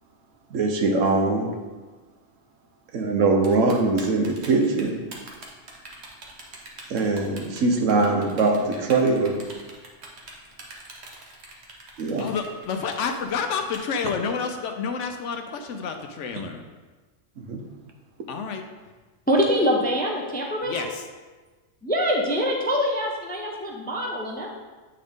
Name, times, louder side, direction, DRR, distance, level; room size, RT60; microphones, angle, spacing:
voice 1, 0.5-1.5 2.9-5.0 6.9-9.4 12.0-12.3 17.4-17.6, right 3 dB, 80° right, 3 dB, 1.2 m, -22 dB
Typing, 3.4-13.8, right 3 dB, 60° right, 1.2 m, -43 dB
voice 2, 12.2-16.6 18.3-18.6 20.6-21.0, left 5 dB, 70° left, 5 dB, 0.9 m, -29 dB
voice 3, 19.3-20.9 21.8-24.5, equal, 15° left, 0 dB, 0.3 m, -24 dB
8.6 x 3.8 x 3.5 m, 1.3 s
omnidirectional pair, 1.3 m